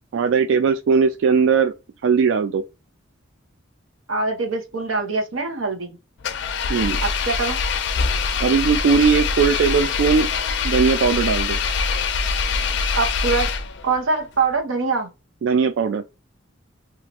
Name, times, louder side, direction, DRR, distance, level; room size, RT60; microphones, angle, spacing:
voice 1, 0.1-1.7 2.0-2.6 6.7-7.0 8.4-10.3 10.6-11.6 15.4-16.0, right 5 dB, 70° right, 0.3 m, -19 dB
voice 2, 4.1-5.9 7.0-7.6 13.0-13.5 13.8-15.1, right 4 dB, 90° right, 0.9 m, -23 dB
Engine, 6.2-14.0, left 5 dB, 60° left, 0.4 m, -23 dB
2.9 x 2.4 x 2.9 m
head